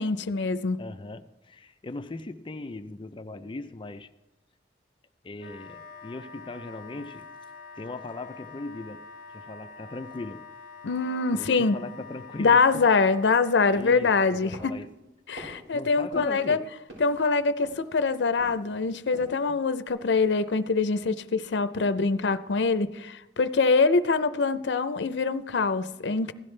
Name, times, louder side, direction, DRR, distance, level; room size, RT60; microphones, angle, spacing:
voice 1, 0.0-0.8 10.8-11.8 12.4-14.7 15.3-16.6 17.0-26.3, left 4 dB, 80° left, 13 dB, 0.5 m, -24 dB
voice 2, 0.8-4.1 5.2-7.3 7.8-10.4 11.3-12.9 13.7-14.9 15.7-16.6, left 2 dB, 30° left, 9 dB, 0.5 m, -39 dB
Wind instrument woodwind instrument, 5.4-13.7, left 4 dB, 55° left, 1.1 m, -46 dB
sound 1, 13.7-14.1 14.5-14.9 15.4-15.7 16.1-16.5 16.9-17.2 17.6-18.0 18.4-18.7 19.0-19.5 19.8-19.9, right 1 dB, 85° right, 5.4 m, -46 dB
16.5 x 12.0 x 3.3 m, 0.97 s
head